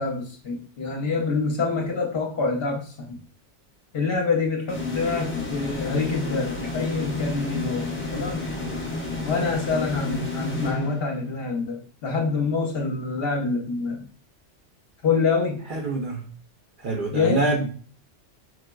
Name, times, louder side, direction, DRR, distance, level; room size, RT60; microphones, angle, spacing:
voice 1, 0.0-3.2 3.9-8.4 9.3-14.0 15.0-15.7 17.1-17.4, left 4 dB, 60° left, 1 dB, 0.8 m, -26 dB
sound 1, 4.7-11.4, left 3 dB, 20° left, 0.3 m, -30 dB
voice 2, 15.7-16.3 16.8-17.7, right 2 dB, 60° right, 0 dB, 0.6 m, -25 dB
4.7 x 2.1 x 2.2 m, 0.41 s
omnidirectional pair, 1.3 m